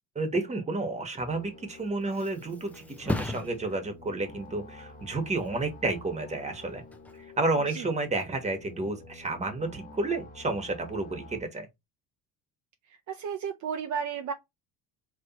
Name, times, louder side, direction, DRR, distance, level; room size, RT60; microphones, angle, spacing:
voice 1, 0.1-6.8 7.4-11.7, right 2 dB, 20° right, 1.4 m, -31 dB
sound 1, 1.2-11.4, left 3 dB, 20° left, 1.3 m, -49 dB
Thump thud, 1.5-9.0 9.4-9.8, left 2 dB, 5° left, 0.5 m, -40 dB
voice 2, 13.1-14.3, right 7 dB, 50° right, 0.7 m, -33 dB
5.5 x 3.2 x 2.9 m
cardioid pair, 140°, 38 cm